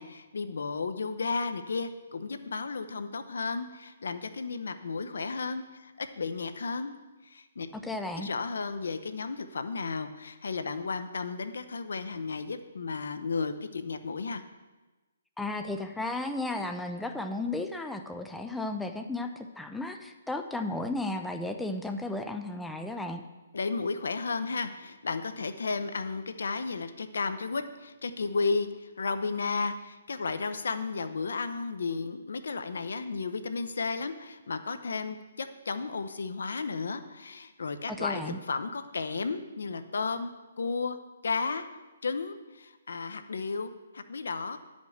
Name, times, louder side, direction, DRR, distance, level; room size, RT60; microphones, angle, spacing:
voice 1, 0.0-6.9 7.2-7.7 8.2-14.4 23.5-40.3 40.6-41.0 41.2-41.7 42.0-44.6, left 4 dB, 80° left, 10 dB, 0.8 m, -33 dB
voice 2, 7.8-8.3 15.4-23.2 37.9-38.4, left 2 dB, 5° left, 6 dB, 0.5 m, -34 dB
9.9 x 5.3 x 6.5 m, 1.2 s
hypercardioid pair, 160°, 0 cm